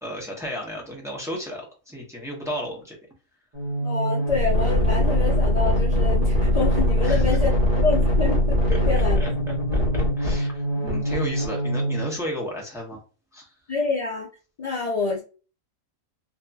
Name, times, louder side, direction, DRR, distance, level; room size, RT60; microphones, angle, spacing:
voice 1, 0.0-2.9 7.0-7.4 8.7-8.8 9.1-9.5 9.9-13.0 13.3-13.5, equal, 5° right, 0.7 m, -33 dB
sound 1, 3.5-12.1, equal, 30° right, 1.0 m, -22 dB
voice 2, 3.8-8.6 8.9-9.2 13.7-14.3 14.6-15.2, left 4 dB, 65° left, 0.3 m, -27 dB
2.7 x 2.6 x 2.3 m
omnidirectional pair, 1.4 m